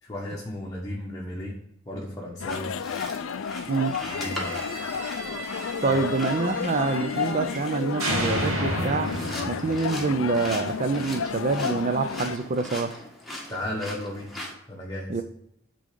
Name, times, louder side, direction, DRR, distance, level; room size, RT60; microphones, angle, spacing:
voice 1, 0.0-1.6 1.9-2.7 4.0-4.6 5.9-6.0 13.5-14.3 14.7-15.1, left 1 dB, 15° left, -3 dB, 1.0 m, -34 dB
sound 1, 2.4-12.4, left 6 dB, 65° left, 0.4 m, -32 dB
sound 2, 2.5-14.5, left 1 dB, ahead, 1.6 m, -41 dB
sound 3, 3.9-7.7 8.0-11.0, right 1 dB, 80° right, 1.8 m, -33 dB
voice 2, 5.8-9.1 9.5-12.9 15.1-15.2, right 4 dB, 35° right, 9 dB, 0.4 m, -26 dB
8.6 x 3.8 x 6.6 m, 0.73 s
head